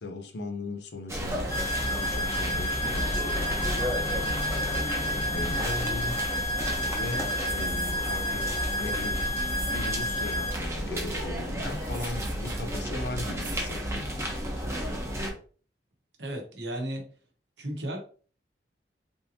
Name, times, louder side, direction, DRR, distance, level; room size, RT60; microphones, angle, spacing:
voice 1, 0.0-1.5 2.0-6.2 7.0-9.2 9.7-14.2, left 2 dB, 70° left, 0.6 m, -38 dB
sound 1, 1.1-15.3, equal, 15° right, 0.8 m, -32 dB
sound 2, 1.5-10.5, left 1 dB, 20° left, 0.6 m, -31 dB
sound 3, 7.5-10.1 11.7-12.7 13.4-13.7, right 6 dB, 50° right, 0.7 m, -46 dB
voice 2, 16.2-17.1 17.6-18.0, right 1 dB, 70° right, 1.0 m, -34 dB
3.6 x 2.7 x 2.7 m
head